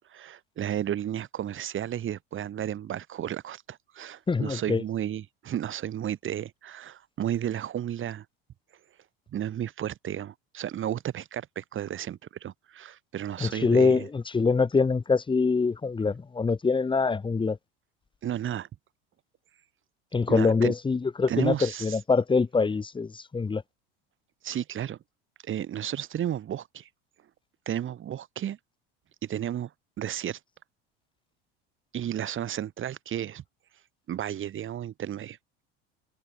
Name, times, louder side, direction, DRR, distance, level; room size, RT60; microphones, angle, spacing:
voice 1, 0.1-8.2 9.3-14.1 18.2-18.7 20.3-20.7 21.3-22.0 24.4-25.0 25.4-26.9 27.7-28.6 29.2-29.7 30.0-30.4 31.9-33.4 34.1-35.4, right 10 dB, 45° right, 4.3 m, -33 dB
voice 2, 4.3-4.8 13.4-17.6 20.1-23.6, left 4 dB, 15° left, 1.1 m, -24 dB
hypercardioid pair, 85°, 29 cm